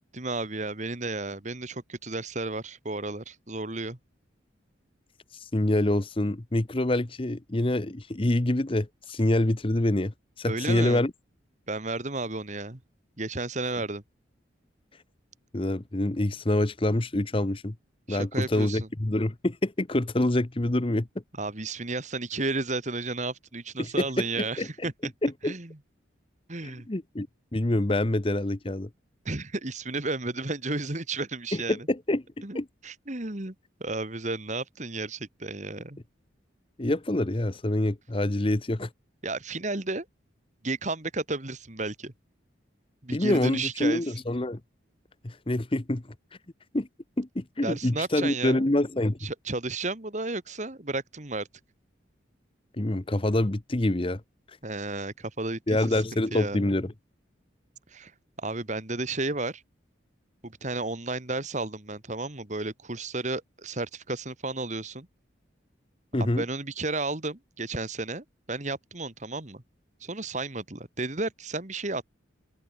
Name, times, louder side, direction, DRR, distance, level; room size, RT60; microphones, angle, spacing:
voice 1, 0.1-4.0 10.5-11.0 11.7-12.8 13.2-14.0 18.1-18.9 21.4-25.1 25.4-25.8 26.5-26.9 29.3-31.8 32.4-33.5 33.8-36.0 39.2-40.1 40.6-42.1 43.0-44.0 47.6-48.7 49.2-51.5 54.6-56.0 56.3-56.7 57.9-58.1 58.4-59.6 60.4-65.1 66.2-69.6 70.0-72.0, right 2 dB, 40° right, 2.0 m, -33 dB
voice 2, 5.3-11.1 15.5-17.7 18.1-21.1 23.8-24.0 24.4-24.9 25.2-25.5 26.6-27.3 27.5-28.9 31.5-32.7 36.8-38.9 43.1-44.6 45.2-46.0 46.7-46.9 47.2-49.3 52.7-54.2 55.7-56.9 66.1-66.4, left 1 dB, 25° left, 0.9 m, -26 dB
open air
head